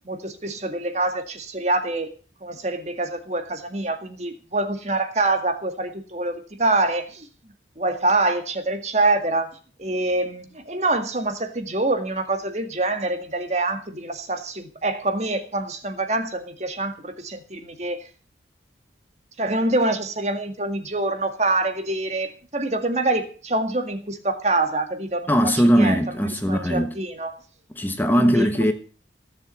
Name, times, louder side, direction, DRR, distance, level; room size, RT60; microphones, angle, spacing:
voice 1, 0.1-2.1 2.4-7.3 7.8-9.5 9.8-18.1 19.4-26.0 26.5-27.4 28.1-28.5, right 2 dB, 40° right, 2.0 m, -25 dB
voice 2, 25.3-26.9 27.8-28.7, equal, 10° left, 1.2 m, -19 dB
17.0 x 7.5 x 8.2 m
head